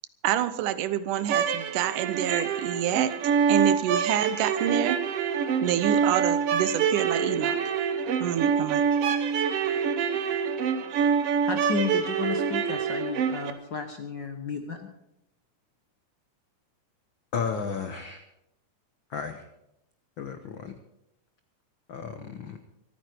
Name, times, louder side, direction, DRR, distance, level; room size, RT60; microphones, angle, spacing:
voice 1, 0.2-3.2 3.5-5.0 5.6-7.6 8.2-8.9, right 11 dB, 90° right, 14 dB, 2.4 m, -27 dB
sound 1, 1.2-13.5, right 7 dB, 60° right, 1.7 m, -26 dB
voice 2, 11.4-14.9, left 5 dB, 60° left, 5 dB, 1.2 m, -33 dB
voice 3, 17.3-18.2 19.1-19.5 20.2-20.7 21.9-22.6, left 6 dB, 75° left, 7 dB, 1.1 m, -33 dB
25.0 x 9.5 x 4.6 m, 0.84 s
omnidirectional pair, 3.6 m